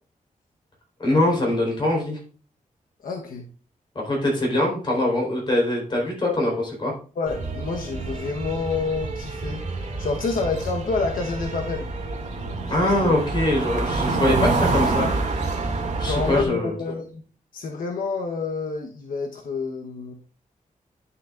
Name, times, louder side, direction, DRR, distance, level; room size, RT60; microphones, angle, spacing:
voice 1, 1.0-2.2 3.9-6.9 12.7-15.1 16.0-16.7, left 1 dB, 35° left, -1 dB, 4.2 m, -23 dB
voice 2, 3.0-3.4 7.2-9.6 10.0-11.9 12.8-13.1 16.0-17.2 17.5-20.1, left 4 dB, 85° left, 2 dB, 1.1 m, -28 dB
sound 1, 7.3-16.4, right 3 dB, 55° right, 2.3 m, -27 dB
11.0 x 6.9 x 2.5 m, 0.40 s
wide cardioid pair, 170°, 14 cm